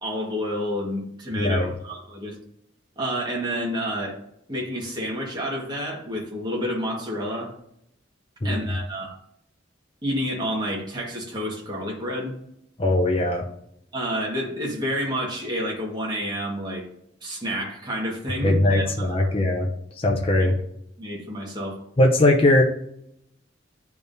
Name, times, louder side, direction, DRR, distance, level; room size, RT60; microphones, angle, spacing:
voice 1, 0.0-2.4 3.0-4.2 4.5-7.5 8.4-9.2 10.0-12.3 13.9-16.9 17.2-19.3 21.0-21.8, equal, 25° right, -3 dB, 1.5 m, -29 dB
voice 2, 1.3-1.7 8.4-8.6 12.8-13.5 18.4-19.7 20.0-20.6 22.0-22.6, left 1 dB, 30° left, 1 dB, 0.7 m, -20 dB
9.9 x 3.5 x 2.7 m, 0.75 s
head